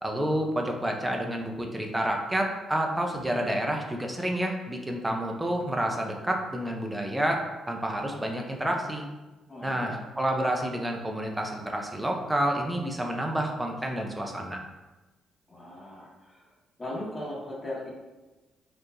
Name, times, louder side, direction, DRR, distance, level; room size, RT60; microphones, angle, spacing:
voice 1, 0.0-7.4 7.7-9.0 9.6-14.6, right 1 dB, 10° right, 1 dB, 0.6 m, -29 dB
voice 2, 9.5-10.0 15.5-16.5 16.8-17.9, left 1 dB, 25° left, -6 dB, 1.5 m, -38 dB
4.5 x 3.0 x 2.6 m, 1.1 s
cardioid pair, 90°, 0 cm